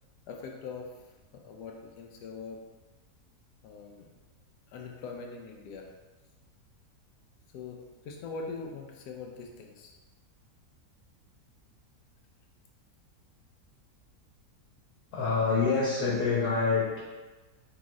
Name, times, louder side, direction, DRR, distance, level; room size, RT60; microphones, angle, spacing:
voice 1, 0.3-0.9 1.3-2.6 3.6-4.1 4.7-5.9 7.5-9.9, left 4 dB, 85° left, 2 dB, 1.2 m, -42 dB
voice 2, 15.1-17.0, left 4 dB, 70° left, -7 dB, 1.4 m, -26 dB
3.8 x 3.0 x 3.6 m, 1.2 s
omnidirectional pair, 1.7 m